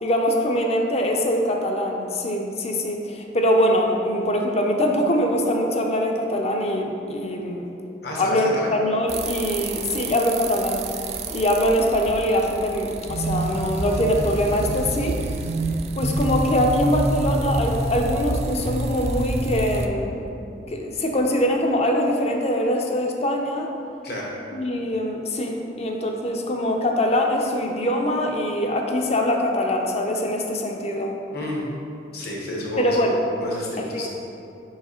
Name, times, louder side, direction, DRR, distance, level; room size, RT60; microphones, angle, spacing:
voice 1, 0.0-7.7 8.2-10.9 11.3-15.2 16.0-20.2 20.7-23.7 24.5-31.2 32.8-33.2 33.8-34.1, equal, 35° left, 2 dB, 0.6 m, -23 dB
voice 2, 8.0-8.8 24.0-24.3 31.3-31.7 32.1-33.0 33.4-34.1, left 1 dB, 60° left, -3 dB, 1.2 m, -30 dB
sound 1, 9.1-19.9, right 2 dB, 35° right, 0.3 m, -28 dB
4.9 x 4.8 x 4.3 m, 2.6 s
head